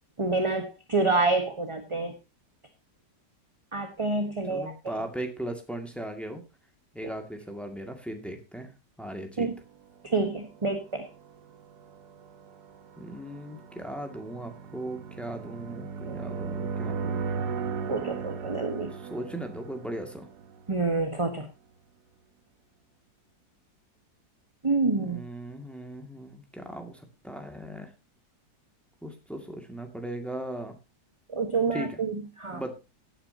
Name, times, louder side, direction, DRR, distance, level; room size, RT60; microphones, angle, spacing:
voice 1, 0.2-2.1 3.7-4.7 9.4-9.5 10.0-11.1 16.1-16.2 17.9-18.9 20.7-21.5 24.6-25.2 31.3-32.6, right 3 dB, 20° right, 6 dB, 1.2 m, -27 dB
voice 2, 4.5-6.4 6.9-8.7 9.0-9.5 13.0-17.2 18.9-20.3 24.9-27.9 29.0-30.8 31.7-32.0 32.5-32.7, right 1 dB, ahead, 4 dB, 2.0 m, -38 dB
sound 1, 10.3-21.1, right 5 dB, 70° right, 1.6 m, -37 dB
16.5 x 8.8 x 2.8 m, 0.27 s
omnidirectional pair, 1.8 m